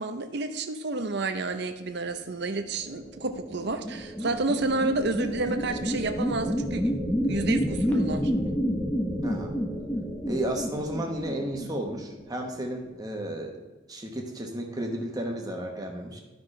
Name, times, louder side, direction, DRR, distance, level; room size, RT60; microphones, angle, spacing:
voice 1, 0.0-6.9 7.3-8.3, right 3 dB, 55° right, 8 dB, 0.7 m, -30 dB
sound 1, 2.7-12.5, equal, 10° left, 0.8 m, -30 dB
voice 2, 9.2-9.5 10.3-13.5 13.9-16.2, right 1 dB, 20° right, 1 dB, 1.1 m, -33 dB
12.0 x 5.7 x 3.2 m, 1.2 s
head